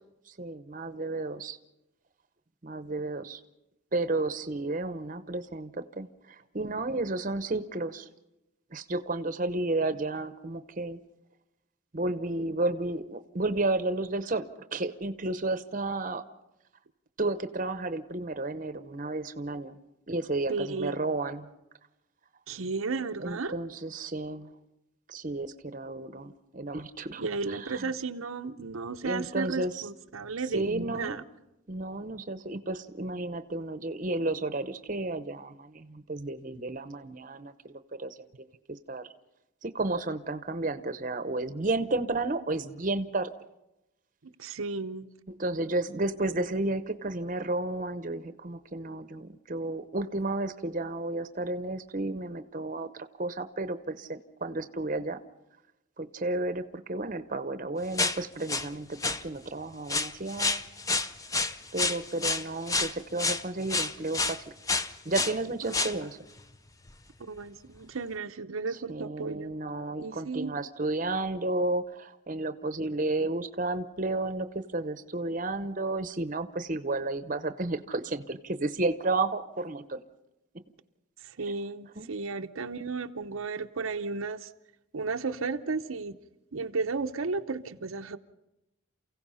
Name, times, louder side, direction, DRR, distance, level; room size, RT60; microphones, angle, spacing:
voice 1, 0.4-1.6 2.6-3.4 3.9-8.1 8.7-11.0 11.9-16.2 17.2-19.7 20.1-21.5 23.2-24.5 25.1-27.9 29.0-29.8 30.5-31.2 31.7-38.2 38.9-39.1 39.6-43.3 45.4-55.2 56.0-60.6 61.7-64.4 65.0-66.2 68.9-80.0 81.4-81.6 82.0-82.1, right 2 dB, 40° right, 11 dB, 0.8 m, -32 dB
voice 2, 20.5-21.0 22.5-23.5 27.2-31.2 44.2-45.1 65.7-66.1 67.2-69.5 70.0-70.5 81.2-84.5 84.9-86.1 86.5-88.2, right 4 dB, 85° right, 6 dB, 0.8 m, -34 dB
sound 1, 57.9-58.7 59.0-59.2 59.9-64.4 64.7-65.4 65.7-66.0 66.4-66.5 66.9-67.0 67.7-67.8, left 3 dB, 15° left, 0.6 m, -29 dB
28.5 x 16.0 x 5.6 m, 0.95 s
head